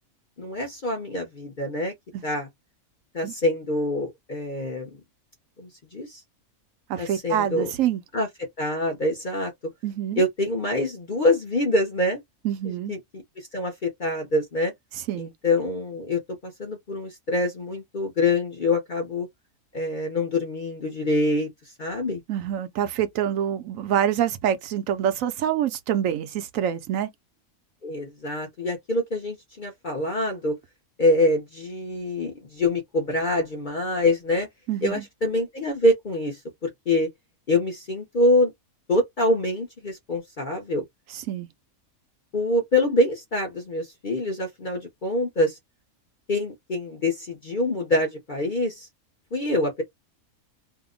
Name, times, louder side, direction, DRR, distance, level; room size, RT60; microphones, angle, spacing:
voice 1, 0.4-1.9 2.2-2.5 3.1-4.9 5.6-6.2 7.0-7.7 8.1-9.5 10.2-12.2 12.6-13.0 13.4-14.7 15.2-19.3 19.7-21.5 21.8-22.2 27.8-30.6 31.0-34.5 34.8-37.1 37.5-38.5 38.9-40.8 42.3-45.6 46.3-48.9 49.3-49.8, left 1 dB, 45° left, 0.7 m, -25 dB
voice 2, 6.9-8.0 9.8-10.2 12.4-12.9 15.1-15.3 22.3-27.1 34.7-35.0 41.1-41.5, right 10 dB, 75° right, 1.0 m, -26 dB
2.8 x 2.1 x 3.6 m
omnidirectional pair, 1.5 m